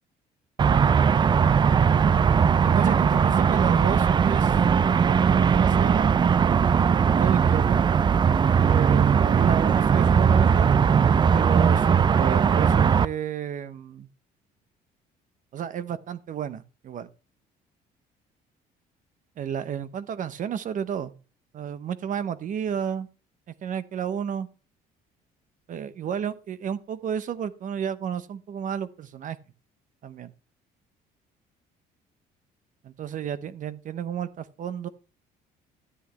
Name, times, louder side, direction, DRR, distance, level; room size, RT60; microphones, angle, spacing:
sound 1, 0.6-13.1, right 7 dB, 25° right, 0.4 m, -19 dB
voice 1, 2.6-4.6 5.0-6.1 7.2-7.8 8.6-10.7 11.3-14.1 15.5-17.1 19.4-21.1 21.5-23.1 23.6-24.5 25.7-29.4 30.0-30.3 32.8-34.9, right 8 dB, 50° right, 0.9 m, -32 dB
12.5 x 8.2 x 3.2 m
cardioid pair, 110°, 17 cm